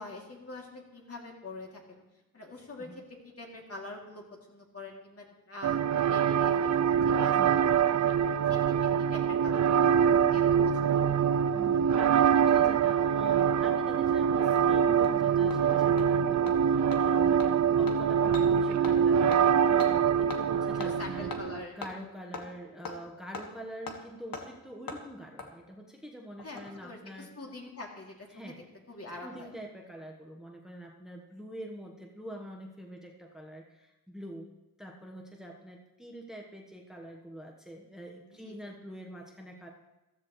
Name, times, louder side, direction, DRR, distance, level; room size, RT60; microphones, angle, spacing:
voice 1, 0.0-2.0 2.3-7.7 8.5-9.7 10.0-11.0 20.8-21.8 26.4-28.5 28.9-29.5 38.3-38.6, left 2 dB, 40° left, 0 dB, 2.7 m, -45 dB
sound 1, 5.6-21.6, right 8 dB, 45° right, 0.5 m, -24 dB
voice 2, 11.5-21.3 21.7-27.3 28.3-28.6 29.2-34.5 34.8-39.7, equal, ahead, 0 dB, 1.2 m, -45 dB
Hammer, 13.6-13.7 14.1-14.2 14.6-14.7 15.0-15.1 15.5-15.6 16.0-16.1 16.5-16.6 16.9-17.0 17.4-17.5 17.9-18.0 18.3-18.5 18.8-19.0 19.3-19.4 19.8-19.9 20.3-20.4 20.8-20.9 21.3-21.4 21.8-21.9 22.3-22.5 22.9-23.0 23.3-23.5 23.9-24.0 24.3-24.5 24.9-25.0 25.4-25.5 26.4-26.8 27.1-27.2, left 4 dB, 65° left, 1.7 m, -39 dB
14.5 x 13.5 x 3.1 m, 1.0 s
cardioid pair, 100°, 37 cm